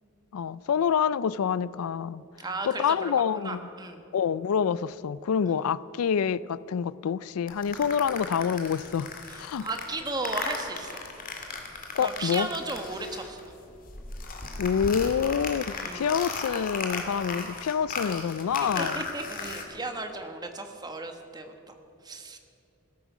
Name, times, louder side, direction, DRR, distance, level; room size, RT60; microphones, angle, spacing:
voice 1, 0.3-2.2 2.6-3.6 4.1-9.7 11.9-12.5 14.6-15.6 15.9-19.0, left 7 dB, 90° left, 19 dB, 0.4 m, -27 dB
voice 2, 2.4-4.0 9.3-11.0 12.0-13.5 15.7-16.1 18.6-21.7 22.0-22.4, right 2 dB, 20° right, 5 dB, 1.3 m, -35 dB
sound 1, 7.5-13.5 13.8-19.6, left 4 dB, 40° left, 2.1 m, -36 dB
16.0 x 13.5 x 6.1 m, 2.9 s
head